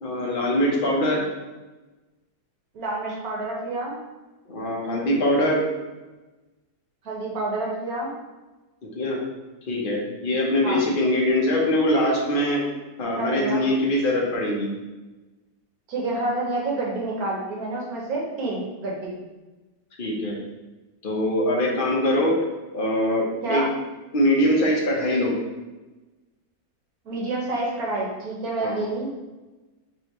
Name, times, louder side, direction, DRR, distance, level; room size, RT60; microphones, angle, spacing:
voice 1, 0.0-1.2 4.5-5.6 8.8-9.2 9.7-12.6 13.0-14.7 20.0-20.4 21.0-22.3 22.7-23.7 24.1-25.3 28.6-28.8, left 1 dB, 35° left, -3 dB, 0.9 m, -22 dB
voice 2, 2.7-4.0 7.0-8.1 10.6-10.8 13.2-13.6 15.9-19.1 23.4-23.7 27.0-29.1, right 2 dB, 60° right, -3 dB, 1.2 m, -28 dB
4.9 x 3.4 x 3.1 m, 1.2 s
omnidirectional pair, 2.0 m